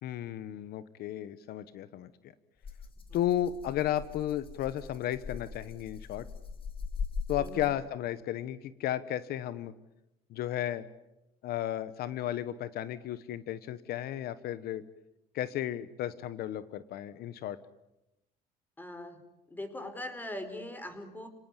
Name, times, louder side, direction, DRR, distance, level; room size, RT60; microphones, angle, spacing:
voice 1, 0.0-2.3 3.1-6.3 7.3-9.7 10.3-10.9 11.4-14.8 15.3-17.6, left 12 dB, 65° left, 15 dB, 1.1 m, -34 dB
Rattle (instrument), 2.6-8.0, left 5 dB, 30° left, 3.1 m, -41 dB
voice 2, 18.8-19.2 19.5-21.3, left 1 dB, 10° left, 9 dB, 4.5 m, -41 dB
30.0 x 18.0 x 9.8 m, 0.94 s
cardioid pair, 115°, 17 cm